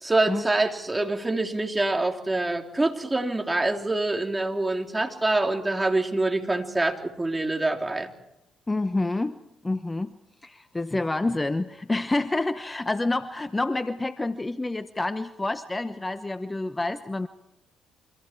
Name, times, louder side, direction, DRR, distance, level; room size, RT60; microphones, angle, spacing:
voice 1, 0.0-8.1, right 2 dB, 20° right, 3 dB, 3.5 m, -25 dB
voice 2, 8.7-9.4 9.6-10.1 10.4-17.3, left 2 dB, 20° left, 12 dB, 1.0 m, -28 dB
29.0 x 25.0 x 4.6 m, 0.86 s
hypercardioid pair, 50°, 0 cm